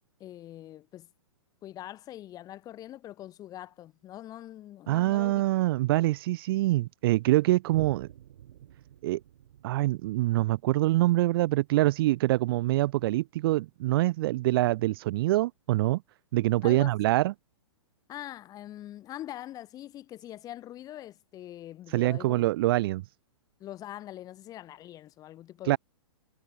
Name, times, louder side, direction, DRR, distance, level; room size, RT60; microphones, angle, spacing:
voice 1, 0.2-1.1 1.6-5.4 16.6-17.0 18.1-22.4 23.6-25.8, left 13 dB, 20° left, 1.5 m, -43 dB
voice 2, 4.9-8.1 9.0-9.2 9.6-16.0 16.3-17.3 21.9-23.0 25.7-25.8, right 17 dB, 45° right, 0.6 m, -25 dB
Boom, 7.7-14.6 15.2-15.3, right 11 dB, 65° right, 2.9 m, -51 dB
hypercardioid pair, 145°, 17 cm